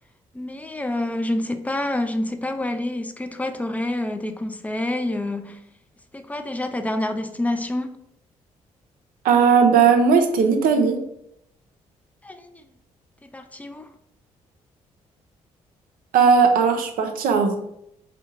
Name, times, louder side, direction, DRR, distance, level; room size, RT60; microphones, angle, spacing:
voice 1, 0.3-5.6 6.1-8.0 12.2-12.6 13.3-13.9, left 1 dB, 10° left, 0.4 m, -27 dB
voice 2, 9.2-11.0 16.1-17.6, right 5 dB, 60° right, 0.5 m, -17 dB
2.7 x 2.2 x 3.8 m
hypercardioid pair, 40°, 16 cm